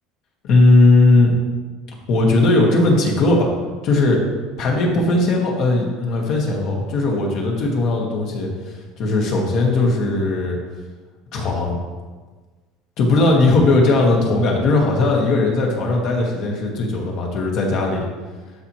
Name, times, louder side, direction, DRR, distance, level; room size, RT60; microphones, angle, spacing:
voice 1, 0.4-1.3 2.1-3.5 3.8-4.2 4.6-10.6 11.3-11.8 13.0-18.1, left 2 dB, 45° left, 0 dB, 1.4 m, -18 dB
12.0 x 4.3 x 3.0 m, 1.4 s
cardioid pair, 165°, 0 cm